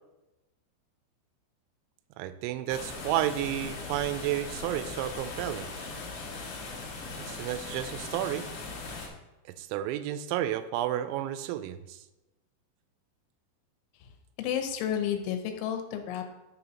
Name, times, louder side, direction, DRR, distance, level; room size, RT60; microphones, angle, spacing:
voice 1, 2.2-5.7 7.2-8.5 9.6-12.0, right 12 dB, 85° right, 11 dB, 2.9 m, -31 dB
sound 1, 2.7-9.1, left 3 dB, 60° left, 2.7 m, -39 dB
voice 2, 14.4-16.3, left 9 dB, 85° left, 6 dB, 3.3 m, -31 dB
12.0 x 6.0 x 2.9 m, 1.0 s
omnidirectional pair, 5.3 m